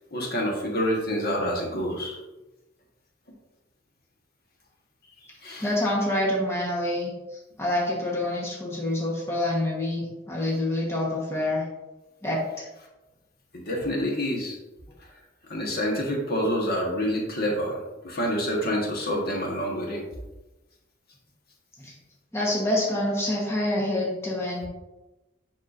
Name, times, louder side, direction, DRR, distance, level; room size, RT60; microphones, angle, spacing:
voice 1, 0.1-2.2 5.4-5.7 13.5-14.6 15.5-17.8 18.0-20.0, equal, 55° left, -1 dB, 1.4 m, -27 dB
voice 2, 5.6-11.7 12.2-12.7 21.8-21.9 22.3-24.7, left 1 dB, 15° left, -4 dB, 1.2 m, -27 dB
7.2 x 5.9 x 2.6 m, 1.0 s
head